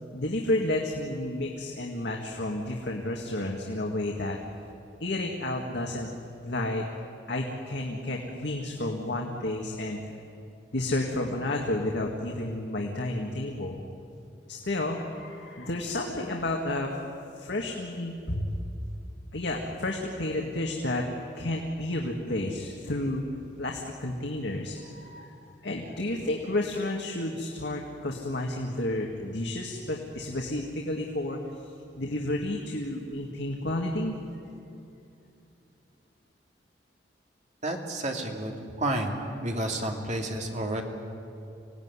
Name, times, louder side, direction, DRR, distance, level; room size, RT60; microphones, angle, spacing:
voice 1, 0.1-4.4 5.0-6.1 6.4-6.8 7.3-10.0 10.7-13.8 14.5-16.9 17.4-18.4 19.3-21.1 21.4-23.2 23.6-25.3 25.6-31.4 32.0-34.2, left 1 dB, 65° left, 0 dB, 2.0 m, -31 dB
voice 2, 37.6-39.1 39.4-40.8, right 1 dB, 40° right, 2 dB, 2.7 m, -30 dB
26.0 x 17.5 x 9.8 m, 2.7 s
head